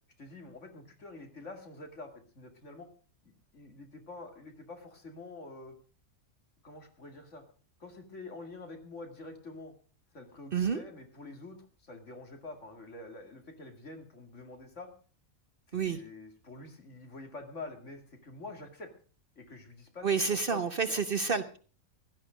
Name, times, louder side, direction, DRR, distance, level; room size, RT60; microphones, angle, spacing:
voice 1, 0.2-2.9 3.2-5.7 6.6-7.4 7.8-9.7 10.1-14.9 15.7-18.9 19.4-21.0, left 2 dB, 60° left, 4 dB, 2.7 m, -47 dB
voice 2, 20.0-21.6, right 5 dB, 45° right, 10 dB, 0.9 m, -29 dB
16.0 x 12.0 x 5.0 m, 0.40 s
omnidirectional pair, 1.5 m